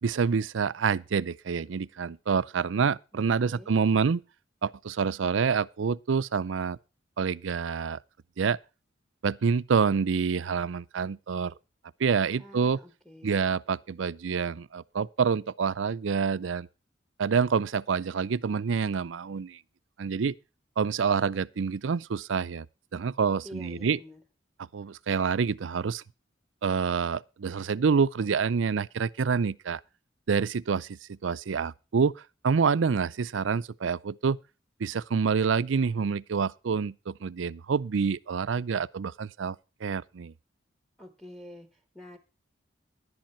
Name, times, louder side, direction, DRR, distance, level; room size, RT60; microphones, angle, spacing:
voice 1, 0.0-4.2 4.6-6.8 7.2-8.0 8.4-8.6 9.2-11.5 12.0-12.8 13.2-16.7 17.2-19.6 20.0-20.3 20.8-22.7 22.9-24.0 24.6-26.0 26.6-29.8 30.3-32.1 32.4-34.4 34.8-39.6 39.8-40.3, right 5 dB, 90° right, 0.5 m, -27 dB
voice 2, 3.3-3.7 12.4-13.4 23.4-24.2 41.0-42.2, left 1 dB, ahead, 1.2 m, -47 dB
11.5 x 10.5 x 4.4 m
head